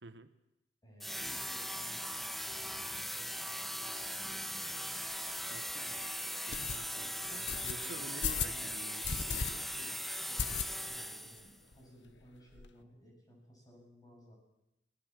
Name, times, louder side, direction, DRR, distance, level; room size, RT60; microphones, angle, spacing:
voice 1, 0.0-0.3 5.5-6.2 6.5-10.0, right 3 dB, 85° right, 11 dB, 1.3 m, -50 dB
voice 2, 0.8-4.7 6.8-8.7 9.5-14.3, equal, 20° left, 0 dB, 8.0 m, -59 dB
sound 1, 1.0-11.6, equal, ahead, 0.7 m, -39 dB
sound 2, 5.1-5.2 5.7-5.8 6.5-6.8 7.5-7.7 8.2-8.6 9.0-9.5 9.8-9.9 10.4-11.0 11.4-11.5 11.7-11.8 12.1-12.7, left 7 dB, 85° left, 1.0 m, -36 dB
22.5 x 18.5 x 7.6 m, 0.90 s
head